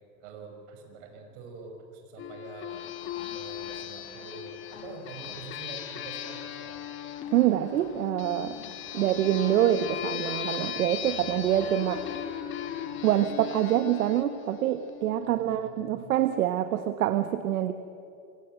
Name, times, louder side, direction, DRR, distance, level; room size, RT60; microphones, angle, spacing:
voice 1, 0.2-2.9 3.3-6.8 15.2-16.0, right 5 dB, 55° right, 4 dB, 6.2 m, -45 dB
sound 1, 2.2-15.4, left 10 dB, 30° left, 1.7 m, -38 dB
sound 2, 2.7-13.8, left 6 dB, 45° left, 5.6 m, -51 dB
voice 2, 7.3-8.5 8.9-12.0 13.0-17.7, right 11 dB, 75° right, 10 dB, 1.3 m, -26 dB
26.5 x 25.0 x 8.0 m, 2.6 s
supercardioid pair, 140°, 43 cm